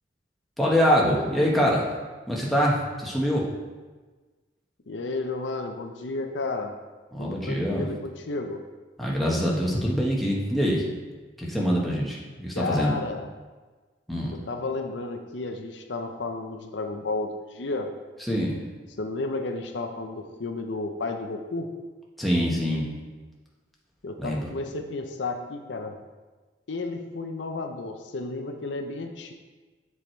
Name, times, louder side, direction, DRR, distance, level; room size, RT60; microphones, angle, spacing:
voice 1, 0.6-1.9 2.3-3.5 7.1-7.9 9.0-10.8 11.4-13.0 14.1-14.3 18.2-18.6 22.2-22.9 24.2-24.5, equal, ahead, -4 dB, 1.1 m, -24 dB
voice 2, 4.9-6.7 7.2-8.6 12.6-13.3 14.3-17.9 19.0-21.7 24.0-25.9 26.7-29.3, left 3 dB, 80° left, 5 dB, 0.7 m, -32 dB
7.2 x 4.8 x 4.4 m, 1.3 s
head